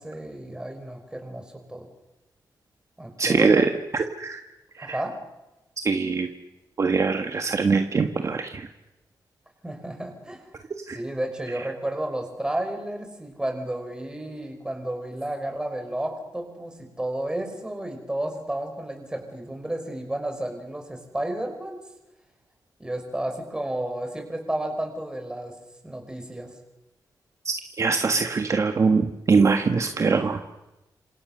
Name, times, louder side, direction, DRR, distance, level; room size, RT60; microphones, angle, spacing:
voice 1, 0.0-1.9 3.0-3.7 4.8-5.2 9.6-10.5 10.9-21.8 22.8-25.6 25.8-26.6, right 1 dB, 10° right, 4 dB, 5.7 m, -32 dB
voice 2, 3.2-3.7 3.9-4.4 4.8-5.0 5.8-6.3 6.8-8.7 10.9-11.0 27.4-30.4, right 4 dB, 40° right, 6 dB, 1.6 m, -22 dB
30.0 x 27.0 x 6.8 m, 0.99 s
wide cardioid pair, 135°, 8 cm